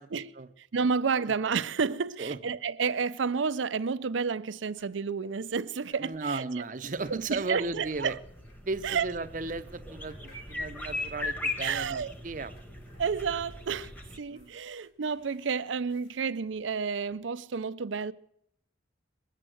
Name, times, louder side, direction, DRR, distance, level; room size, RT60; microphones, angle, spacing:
voice 1, 0.6-6.6 7.1-8.2 8.8-9.1 11.6-12.1 13.0-13.9 14.2-18.1, right 5 dB, 85° right, 0.5 m, -30 dB
sound 1, 4.6-16.7, left 1 dB, 90° left, 3.8 m, -63 dB
voice 2, 6.0-8.2 8.7-12.5 14.3-14.5, right 3 dB, 45° right, 0.6 m, -35 dB
sound 2, 7.2-14.2, left 2 dB, 10° left, 1.2 m, -39 dB
21.5 x 7.8 x 7.8 m
head